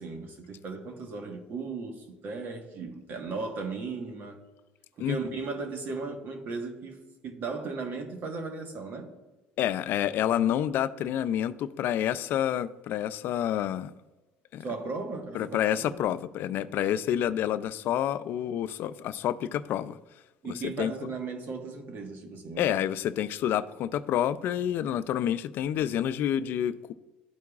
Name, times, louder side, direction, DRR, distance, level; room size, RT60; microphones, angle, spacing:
voice 1, 0.0-4.4 5.0-9.1 14.6-16.0 20.4-22.8, right 4 dB, 50° right, 1.4 m, -36 dB
voice 2, 9.6-13.9 14.5-14.6 15.3-20.0 20.4-20.9 22.6-26.9, left 10 dB, 60° left, 0.4 m, -28 dB
12.5 x 4.6 x 2.4 m
supercardioid pair, 105°, 4 cm